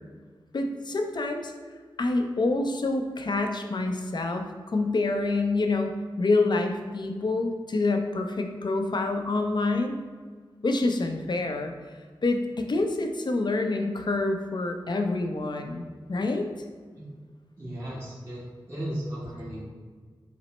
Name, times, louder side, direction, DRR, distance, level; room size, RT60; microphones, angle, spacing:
voice 1, 0.5-1.5 2.0-9.9 10.6-11.7 12.2-15.8 16.1-16.5, left 2 dB, 55° left, 5 dB, 0.5 m, -27 dB
voice 2, 17.6-19.7, right 1 dB, 30° right, -10 dB, 1.4 m, -36 dB
5.9 x 2.0 x 4.2 m, 1.5 s
wide cardioid pair, 65°, 9 cm